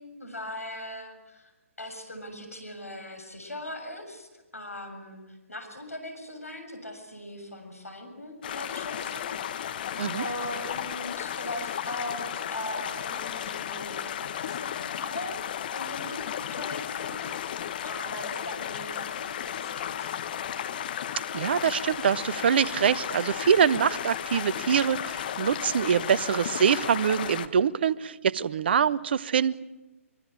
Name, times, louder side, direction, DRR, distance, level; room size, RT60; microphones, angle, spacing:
voice 1, 0.0-1.5 1.8-9.8 10.2-15.4 15.7-20.1, left 1 dB, 75° left, 5 dB, 7.2 m, -40 dB
sound 1, 8.4-27.5, left 10 dB, 40° left, 1.4 m, -34 dB
voice 2, 21.3-29.6, right 7 dB, 45° right, 17 dB, 0.9 m, -24 dB
24.5 x 23.5 x 8.8 m, 1.1 s
figure-of-eight pair, 130°, 8 cm